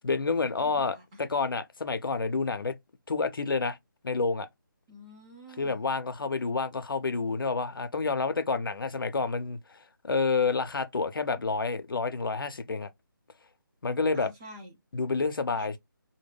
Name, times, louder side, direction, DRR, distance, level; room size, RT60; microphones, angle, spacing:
voice 1, 0.0-2.7 3.1-3.8 4.0-4.5 5.6-9.8 10.0-12.9 13.8-14.3 14.9-15.8, left 4 dB, 80° left, 0.5 m, -29 dB
voice 2, 0.5-1.2 4.9-5.9 14.1-14.8 15.6-15.8, equal, 15° right, 0.7 m, -48 dB
2.1 x 2.1 x 3.3 m
figure-of-eight pair, 165°, 12 cm